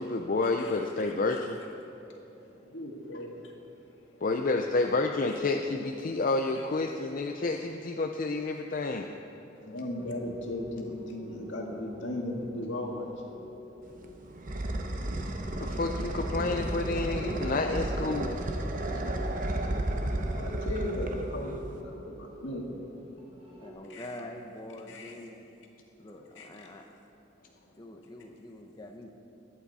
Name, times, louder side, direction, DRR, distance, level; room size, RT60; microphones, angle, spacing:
voice 1, 0.0-1.6 4.2-9.1 15.6-18.4, left 3 dB, 45° left, 3 dB, 0.5 m, -29 dB
voice 2, 2.0-3.6 3.8-4.2 5.3-5.4 6.6-6.7 9.5-13.6 14.0-14.6 15.1-15.7 18.7-24.2 24.9-25.2 26.0-26.1 26.4-26.7 27.4-27.8, left 1 dB, 85° left, 0 dB, 1.9 m, -39 dB
sound 1, 10.0-23.7, equal, 30° right, 1.6 m, -47 dB
sound 2, 13.9-21.8, right 1 dB, 45° right, 0.9 m, -33 dB
voice 3, 23.6-25.4 26.0-26.9 27.8-29.1, left 1 dB, 20° left, 2 dB, 0.8 m, -45 dB
21.5 x 8.6 x 4.2 m, 2.9 s
head